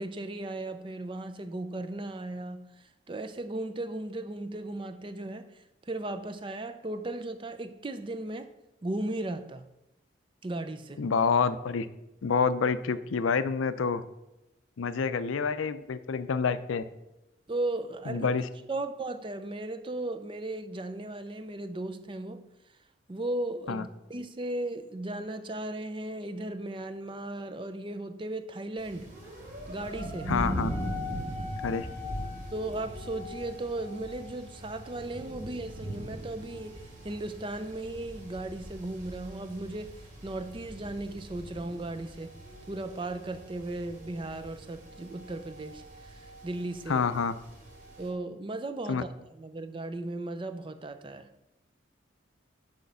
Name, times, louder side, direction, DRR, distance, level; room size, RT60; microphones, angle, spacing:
voice 1, 0.0-8.5 8.8-9.7 10.4-11.1 17.5-18.3 18.7-22.5 23.1-29.1 29.7-30.3 32.5-42.3 42.7-47.0 48.0-51.3, right 2 dB, 25° right, 0.4 m, -36 dB
voice 2, 11.0-11.9 12.2-14.0 14.8-16.8 18.1-18.5 23.7-23.8 30.3-30.7 31.6-31.9 46.9-47.3 48.9-49.0, left 5 dB, 85° left, 0.5 m, -27 dB
sound 1, 28.8-48.1, equal, 40° right, 2.1 m, -40 dB
6.3 x 5.1 x 6.8 m
head